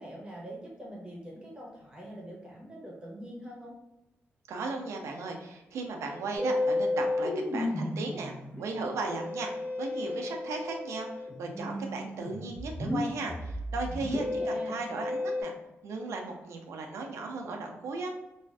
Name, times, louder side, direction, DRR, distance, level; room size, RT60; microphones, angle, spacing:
voice 1, 0.0-3.8 13.9-14.8, right 1 dB, 20° right, -4 dB, 0.8 m, -44 dB
voice 2, 4.5-15.5 15.8-18.1, right 3 dB, 90° right, 2 dB, 0.4 m, -36 dB
Musical instrument, 6.4-15.4, left 2 dB, 40° left, 1.0 m, -33 dB
2.4 x 2.4 x 2.2 m, 0.95 s
cardioid pair, 115°, 5 cm